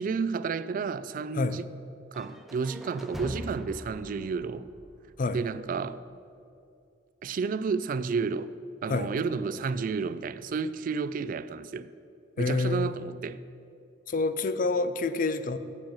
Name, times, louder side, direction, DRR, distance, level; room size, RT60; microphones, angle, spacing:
voice 1, 0.0-1.7 2.1-4.7 5.3-6.0 7.2-8.6 8.8-11.9 12.4-13.4, right 5 dB, 50° right, 0.3 m, -31 dB
sound 1, 2.1-6.1, equal, ahead, 0.6 m, -42 dB
voice 2, 12.4-12.9 14.1-15.6, left 3 dB, 50° left, 0.5 m, -27 dB
7.9 x 7.1 x 7.2 m
head